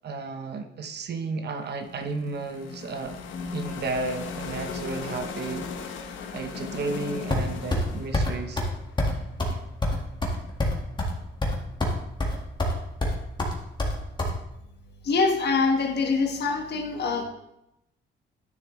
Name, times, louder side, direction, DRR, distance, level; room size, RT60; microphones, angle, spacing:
voice 1, 0.0-3.1 3.5-5.6 6.3-8.6, right 3 dB, 55° right, 7 dB, 1.0 m, -33 dB
sound 1, 1.6-9.7, left 5 dB, 75° left, 1.1 m, -37 dB
sound 2, 7.3-7.9 8.1-8.3 8.6-8.7 9.0-9.1 9.4-9.5 9.8-11.1 11.4-11.9 12.2-12.7 13.0-14.3, left 1 dB, 20° left, 1.7 m, -25 dB
voice 2, 15.0-17.2, left 4 dB, 55° left, 3 dB, 1.5 m, -24 dB
10.5 x 6.6 x 3.2 m, 0.84 s
cardioid pair, 90°, 20 cm